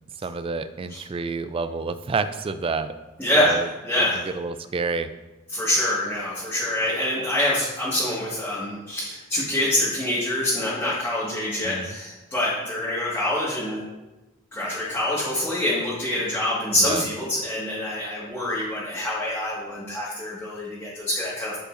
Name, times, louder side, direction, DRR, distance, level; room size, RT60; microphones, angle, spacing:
voice 1, 0.2-3.0 3.3-3.7 4.0-5.1 11.6-12.0 16.8-17.1, right 4 dB, 25° right, 11 dB, 0.3 m, -29 dB
voice 2, 3.2-3.6 3.8-4.2 5.5-13.8 14.5-21.6, left 1 dB, 10° left, -9 dB, 1.6 m, -25 dB
12.0 x 5.3 x 2.5 m, 1.1 s
head